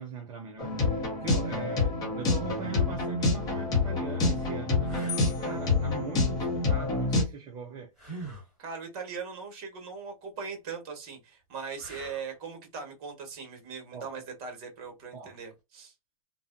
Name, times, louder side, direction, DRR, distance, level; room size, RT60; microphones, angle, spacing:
voice 1, 0.0-7.9 13.9-14.1 15.1-15.4, right 6 dB, 20° right, 0.5 m, -41 dB
sound 1, 0.6-7.2, left 3 dB, 20° left, 0.8 m, -27 dB
sound 2, 3.4-3.5 4.1-4.2 4.8-5.3 8.0-8.5 11.8-12.4 15.3-15.5, right 2 dB, ahead, 1.7 m, -43 dB
sound 3, 5.1-6.9, left 11 dB, 35° left, 0.5 m, -43 dB
voice 2, 8.6-15.9, right 5 dB, 40° right, 1.3 m, -40 dB
2.6 x 2.1 x 2.4 m
hypercardioid pair, 135°, 19 cm